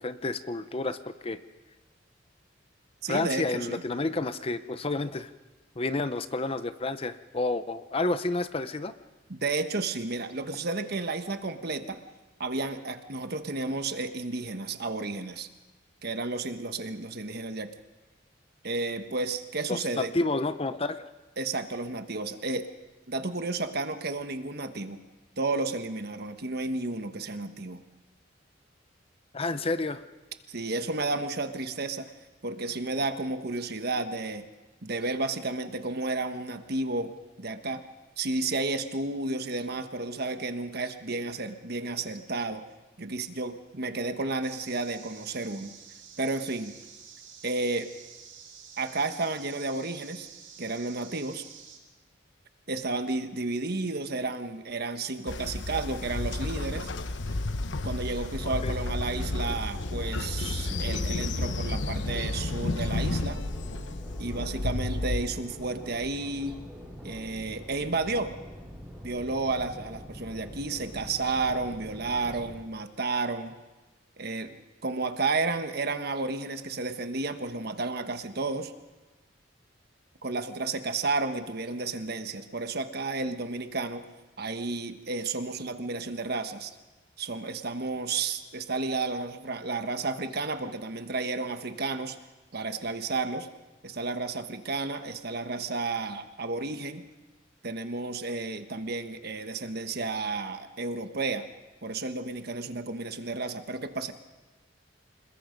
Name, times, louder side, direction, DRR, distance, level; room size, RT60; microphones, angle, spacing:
voice 1, 0.0-1.4 3.1-5.3 5.8-8.9 19.7-21.1 29.3-30.0 58.6-58.7, left 2 dB, 30° left, 12 dB, 0.7 m, -30 dB
voice 2, 3.0-3.8 9.3-12.0 12.4-15.5 16.0-17.7 18.6-20.1 21.4-22.7 23.1-25.0 25.4-27.8 30.5-32.1 32.4-34.5 34.8-37.8 38.2-42.6 43.0-45.7 46.2-46.8 47.4-47.9 48.8-50.3 50.6-51.4 52.7-56.9 57.8-63.4 64.2-66.5 67.0-68.3 69.0-73.6 74.2-78.7 80.2-84.1 84.4-86.7 87.2-92.2 92.5-93.5 93.8-97.0 97.6-101.5 101.8-104.1, right 3 dB, 55° right, 8 dB, 1.3 m, -32 dB
sound 1, 44.4-51.8, right 7 dB, 90° right, 7.0 m, -49 dB
Train, 55.3-65.3, left 2 dB, 70° left, 1.0 m, -31 dB
sound 2, 58.9-72.6, equal, ahead, 5.5 m, -44 dB
27.5 x 21.0 x 5.3 m, 1.2 s
head